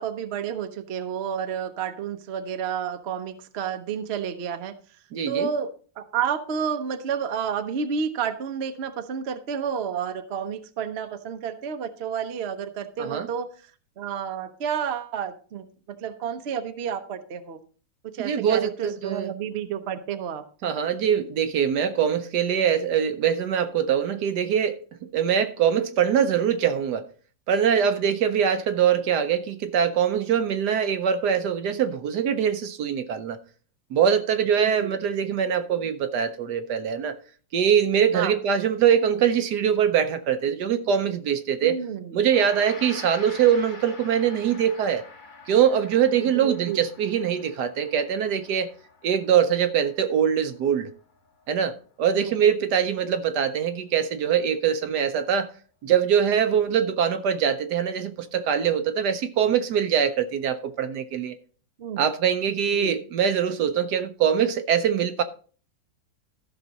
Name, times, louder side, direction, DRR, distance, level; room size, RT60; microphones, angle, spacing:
voice 1, 0.0-4.8 5.3-5.7 6.0-13.5 14.0-15.6 16.0-17.6 18.1-20.4 34.6-35.0 38.1-38.3 41.6-42.1 46.3-46.8 52.1-52.3 61.8-62.0 62.7-62.9, right 7 dB, 50° right, 0.8 m, -30 dB
voice 2, 5.1-5.5 13.0-13.3 18.2-19.3 20.6-27.0 27.5-33.4 33.9-37.1 37.5-41.8 42.1-45.0 45.5-48.7 49.0-50.9 51.5-55.5 55.8-61.4 62.0-65.2, right 8 dB, 70° right, 1.1 m, -23 dB
Gong, 42.2-51.6, left 3 dB, 30° left, 1.3 m, -46 dB
14.0 x 5.9 x 4.0 m
omnidirectional pair, 2.1 m